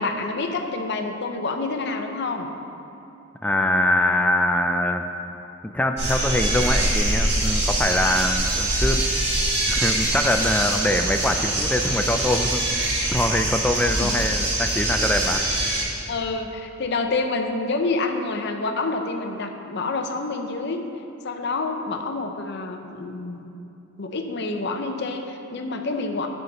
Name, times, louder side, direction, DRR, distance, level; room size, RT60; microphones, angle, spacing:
voice 1, 0.0-2.5 14.0-14.2 16.1-20.8 21.2-23.4 24.0-26.3, left 3 dB, 55° left, 5 dB, 0.6 m, -27 dB
voice 2, 3.4-5.1 5.6-9.0 9.7-15.4, left 1 dB, 5° left, 5 dB, 0.3 m, -23 dB
sound 1, 6.0-15.8, right 1 dB, 55° right, 1.8 m, -24 dB
8.1 x 5.8 x 5.3 m, 2.8 s
head